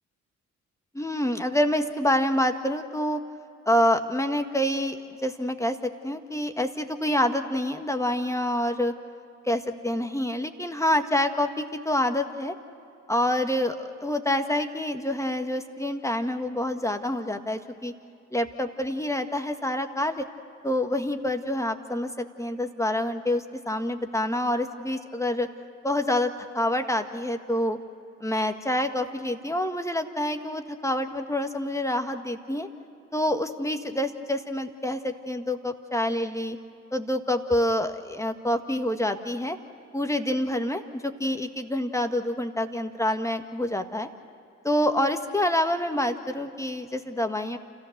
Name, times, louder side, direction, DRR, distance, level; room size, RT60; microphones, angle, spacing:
voice 1, 0.9-3.2 3.6-5.0 5.2-8.9 9.4-12.5 13.1-17.9 18.3-20.2 20.6-25.5 25.8-27.8 28.2-32.7 33.1-36.6 36.9-39.6 39.9-44.1 44.6-47.6, left 1 dB, 10° left, 6 dB, 1.7 m, -27 dB
29.5 x 14.5 x 6.8 m, 2.5 s
hypercardioid pair, 45°, 35 cm